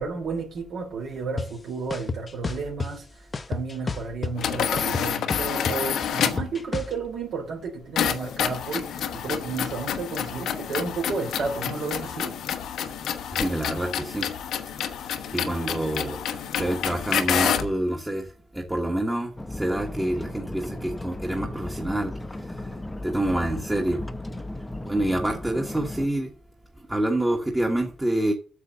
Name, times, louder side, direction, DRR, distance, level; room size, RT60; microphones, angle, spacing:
voice 1, 0.0-12.3, right 4 dB, 70° right, 3.1 m, -32 dB
sound 1, 1.4-1.5 1.9-2.9 3.3-4.5 4.8-6.9, left 3 dB, 35° left, 0.9 m, -30 dB
sound 2, 4.4-6.5 8.0-17.8, left 8 dB, 75° left, 1.1 m, -28 dB
voice 2, 13.3-14.3 15.3-18.3 18.5-22.1 22.5-22.6 23.0-24.0 24.8-26.3 26.9-28.3, right 1 dB, 10° right, 1.4 m, -27 dB
sound 3, 19.4-26.1, left 1 dB, 15° left, 0.9 m, -36 dB
8.3 x 6.7 x 6.8 m
cardioid pair, 90°, 0 cm